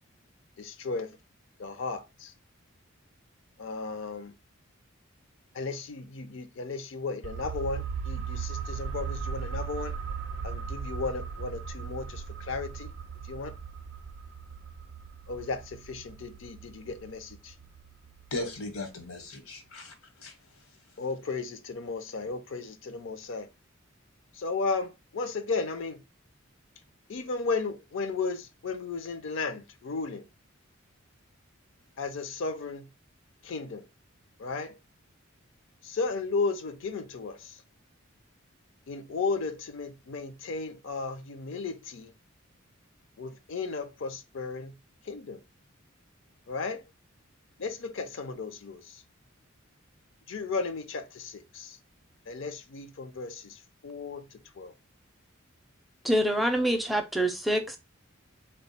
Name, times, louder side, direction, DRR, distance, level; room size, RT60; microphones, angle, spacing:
voice 1, 0.6-1.2 1.6-2.3 3.6-4.3 5.5-9.9 10.4-12.9 13.3-13.5 15.3-17.5 21.0-23.5 24.4-26.0 27.1-30.3 32.0-32.9 33.4-33.9 34.4-34.8 35.8-37.6 38.9-42.1 43.2-44.7 45.1-45.4 46.5-46.8 47.6-49.0 50.3-51.8 52.3-54.7, left 4 dB, 65° left, 0.5 m, -34 dB
sound 1, 7.2-18.6 18.9-19.0, right 6 dB, 60° right, 0.4 m, -38 dB
voice 2, 18.3-20.3, left 2 dB, 85° left, 1.1 m, -37 dB
voice 3, 56.0-57.8, right 1 dB, ahead, 0.4 m, -26 dB
3.5 x 2.2 x 3.9 m
head